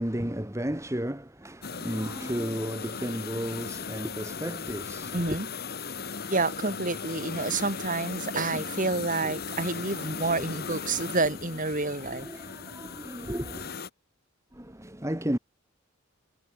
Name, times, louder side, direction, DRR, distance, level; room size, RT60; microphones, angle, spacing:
voice 1, 0.0-5.3 10.0-10.3 10.8-11.2 12.0-13.7 14.5-15.4, equal, 15° right, 2.1 m, -34 dB
sound 1, 1.6-13.9, left 5 dB, 50° left, 1.6 m, -37 dB
voice 2, 5.1-5.5 6.3-12.3, right 3 dB, 40° right, 3.9 m, -29 dB
head